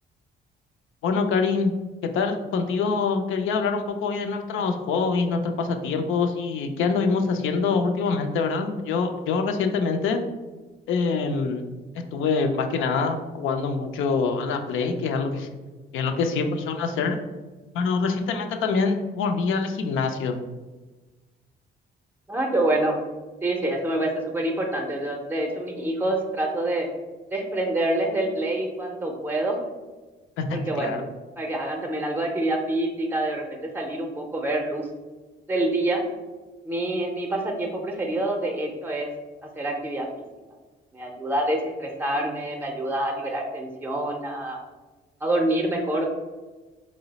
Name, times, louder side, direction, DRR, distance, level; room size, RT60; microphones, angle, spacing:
voice 1, 1.0-1.7 2.0-10.2 10.9-11.6 12.1-15.5 15.9-17.2 17.7-20.4 30.4-31.0, left 4 dB, 80° left, 5 dB, 0.4 m, -25 dB
voice 2, 22.3-23.0 23.4-26.9 27.3-29.6 30.5-31.0 31.4-34.9 35.5-36.0 36.6-39.1 39.4-40.1 40.9-44.6 45.2-46.0, right 1 dB, 10° right, 2 dB, 0.5 m, -26 dB
3.8 x 2.0 x 3.9 m, 1.2 s
cardioid pair, 90°, 20 cm